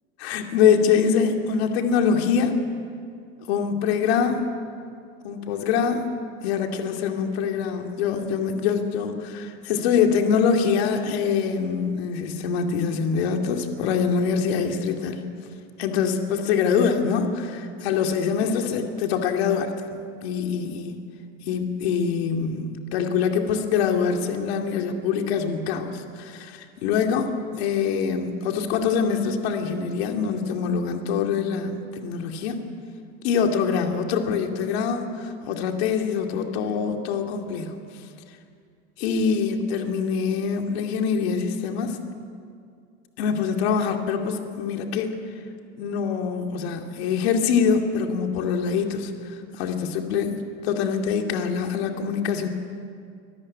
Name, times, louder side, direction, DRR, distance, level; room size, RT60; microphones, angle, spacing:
voice 1, 0.2-2.5 3.5-4.4 5.2-6.1 6.4-15.2 15.8-21.0 21.4-32.6 33.2-37.8 39.0-42.0 43.2-45.1 45.8-52.5, left 6 dB, 80° left, 4 dB, 2.5 m, -24 dB
25.0 x 14.0 x 9.7 m, 2.3 s
cardioid pair, 160°, 31 cm